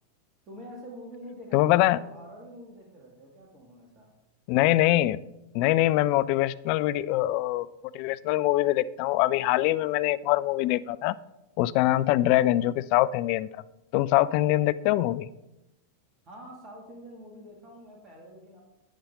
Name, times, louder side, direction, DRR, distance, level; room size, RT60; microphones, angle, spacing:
voice 1, 0.5-4.1 16.2-18.6, equal, 30° right, -1 dB, 2.2 m, -46 dB
voice 2, 1.5-2.0 4.5-5.2 5.5-7.7 7.9-11.1 11.6-13.6 13.9-15.3, left 15 dB, 45° left, 16 dB, 0.3 m, -23 dB
11.0 x 8.7 x 3.7 m, 0.94 s
figure-of-eight pair, 90°, 0 cm